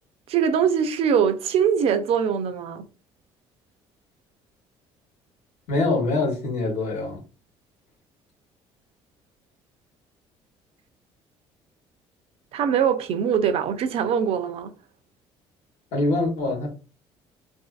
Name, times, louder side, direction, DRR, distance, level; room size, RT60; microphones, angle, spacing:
voice 1, 0.3-2.8 12.5-14.7, right 7 dB, 65° right, 0.5 m, -22 dB
voice 2, 5.7-7.2 15.9-16.7, left 2 dB, 80° left, 1.1 m, -24 dB
2.6 x 2.4 x 2.4 m
supercardioid pair, 80°, 11 cm